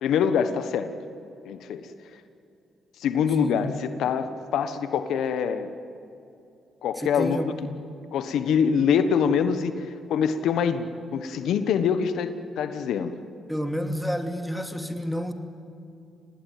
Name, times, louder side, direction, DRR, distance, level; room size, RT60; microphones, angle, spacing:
voice 1, 0.0-0.9 1.4-1.9 3.0-5.7 6.8-7.5 8.1-13.1, left 7 dB, 75° left, 10 dB, 1.3 m, -25 dB
voice 2, 7.0-7.6 13.5-15.3, equal, ahead, 6 dB, 2.8 m, -29 dB
26.5 x 19.5 x 9.3 m, 2.6 s
supercardioid pair, 65°, 0 cm